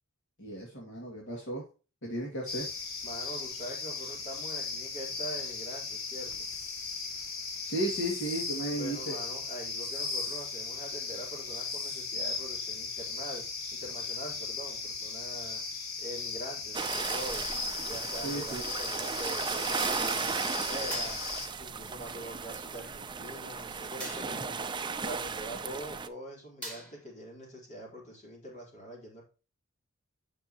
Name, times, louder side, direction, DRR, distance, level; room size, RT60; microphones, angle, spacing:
voice 1, 0.4-1.6 2.0-2.7 7.6-9.2 18.2-18.6, right 1 dB, 60° left, -1 dB, 2.3 m, -34 dB
sound 1, 2.5-21.5, left 4 dB, 85° left, 2.3 m, -37 dB
voice 2, 3.0-6.5 8.7-13.4 13.7-15.6 16.0-17.5 17.9-21.2 21.6-29.2, right 1 dB, 35° left, -1 dB, 3.9 m, -44 dB
sound 2, 16.7-26.1, right 5 dB, 20° right, 0.6 m, -35 dB
sound 3, 20.9-21.5 24.0-24.5 26.6-27.2, right 1 dB, 5° left, 3.1 m, -43 dB
8.9 x 6.7 x 3.0 m, 0.33 s
head